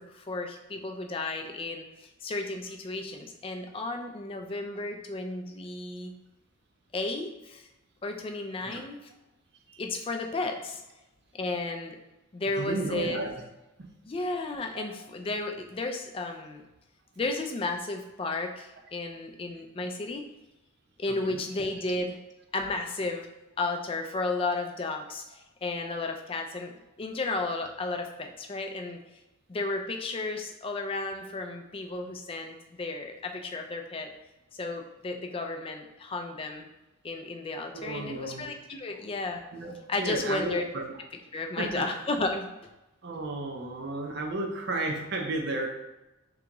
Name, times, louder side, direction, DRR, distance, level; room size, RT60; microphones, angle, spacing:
voice 1, 0.0-6.1 6.9-7.7 8.0-9.0 9.8-10.8 11.3-12.0 12.3-13.2 14.1-16.6 17.2-20.3 21.0-22.2 22.5-23.3 23.6-29.0 29.5-34.1 34.5-36.7 37.0-39.4 39.9-40.7 41.3-42.5, left 2 dB, 25° left, 4 dB, 0.3 m, -33 dB
voice 2, 12.6-13.4 13.8-13.9 14.7-14.9 21.1-21.4 37.7-38.5 39.5-40.8 41.6-41.9 43.0-45.7, right 2 dB, 50° right, 3 dB, 0.6 m, -33 dB
3.8 x 3.4 x 2.9 m, 0.99 s
head